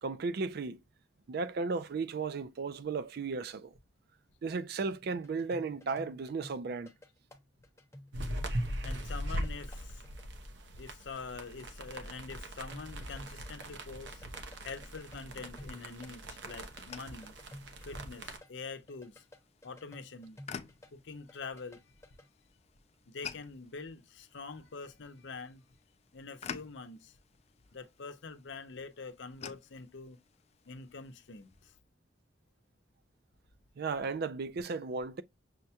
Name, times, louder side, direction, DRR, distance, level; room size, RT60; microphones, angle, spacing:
voice 1, 0.0-0.8 1.3-3.7 4.4-6.9 33.8-35.2, right 4 dB, 60° right, 0.4 m, -35 dB
sound 1, 5.2-10.3 12.7-16.1 16.4-20.9 21.2-22.3, left 1 dB, 15° left, 0.7 m, -53 dB
sound 2, 8.1-18.4, right 1 dB, 85° right, 0.8 m, -40 dB
voice 2, 8.8-10.0 10.8-14.2 14.6-17.4 17.9-19.2 19.6-20.4 20.9-21.8 23.1-25.6 26.1-27.1 27.7-30.2 30.7-31.7, left 4 dB, 85° left, 0.7 m, -45 dB
sound 3, 14.0-31.8, left 7 dB, 35° left, 0.3 m, -52 dB
6.3 x 2.2 x 2.7 m
head